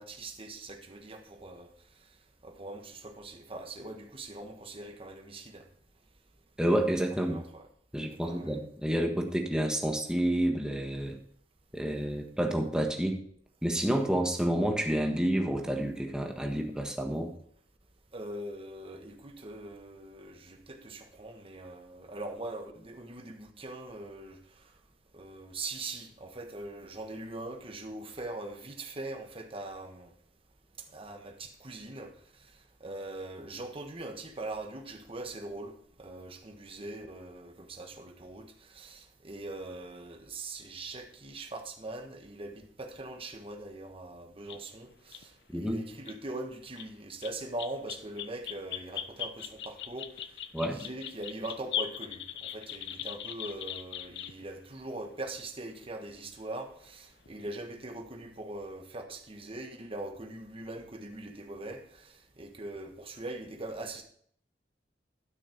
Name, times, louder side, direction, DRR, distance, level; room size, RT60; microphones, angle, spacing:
voice 1, 0.0-1.7 2.4-5.6 7.1-7.7 8.2-8.6 18.1-24.4 25.1-30.1 30.9-32.1 32.8-50.1 50.6-64.0, right 2 dB, 30° right, 1.4 m, -42 dB
voice 2, 6.6-7.4 7.9-11.2 11.7-13.2 13.6-17.3 45.5-45.8 50.5-50.8, right 1 dB, 5° right, 1.5 m, -29 dB
sound 1, 44.5-44.6 45.1-45.2 45.9-46.2 46.8-46.9 47.2-54.4 55.8-55.9 57.3-57.6, left 10 dB, 70° left, 0.6 m, -39 dB
12.5 x 6.4 x 4.5 m
head